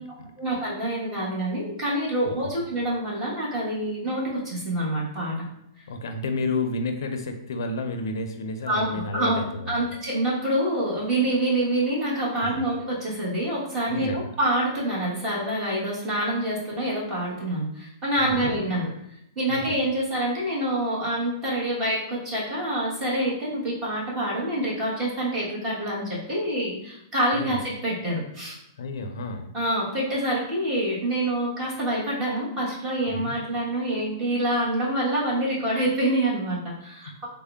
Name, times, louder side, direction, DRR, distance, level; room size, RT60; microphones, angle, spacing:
voice 1, 0.4-5.3 8.7-9.4 9.7-18.9 19.3-28.6 29.5-37.3, right 1 dB, 15° right, -6 dB, 1.1 m, -26 dB
voice 2, 5.9-9.9 12.3-12.7 13.9-14.3 18.2-18.5 19.5-19.8 27.3-27.6 28.8-29.5 33.1-33.4, left 2 dB, 70° left, 6 dB, 0.4 m, -31 dB
3.6 x 2.0 x 3.4 m, 0.77 s
hypercardioid pair, 170°, 2 cm